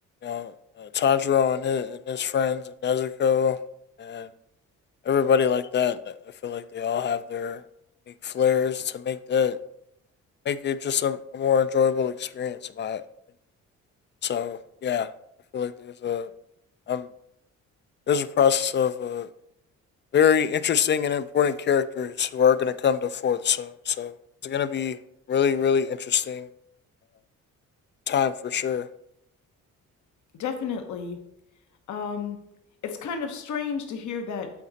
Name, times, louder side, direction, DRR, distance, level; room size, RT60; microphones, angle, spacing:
voice 1, 0.2-3.6 4.0-4.3 5.1-6.1 6.4-7.6 8.2-9.6 10.5-13.0 14.2-15.1 15.5-16.3 16.9-17.1 18.1-19.3 20.1-24.1 24.4-25.0 25.3-26.5 28.1-28.9, left 7 dB, 40° left, 0.4 m, -24 dB
voice 2, 30.4-31.2 31.9-32.4 32.8-34.5, left 6 dB, 75° left, 1.1 m, -31 dB
8.4 x 4.1 x 4.0 m
cardioid pair, 90°, 30 cm